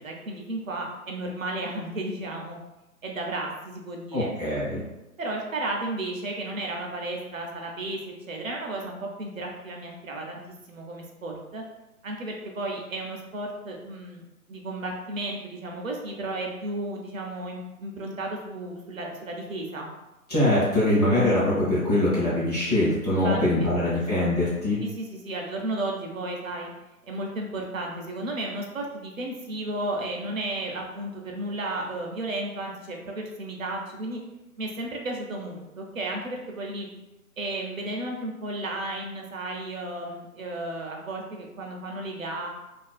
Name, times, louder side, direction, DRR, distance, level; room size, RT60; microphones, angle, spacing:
voice 1, 0.0-2.6 3.0-4.3 5.2-8.0 8.3-10.4 10.7-11.6 12.0-14.2 14.5-19.9 23.2-23.7 24.8-26.7 27.1-34.2 34.6-36.9 37.4-42.5, right 2 dB, 60° right, 0 dB, 0.5 m, -33 dB
voice 2, 4.1-4.8 20.3-24.8, left 1 dB, 25° left, -10 dB, 0.8 m, -23 dB
2.4 x 2.2 x 2.4 m, 0.98 s
hypercardioid pair, 165°, 46 cm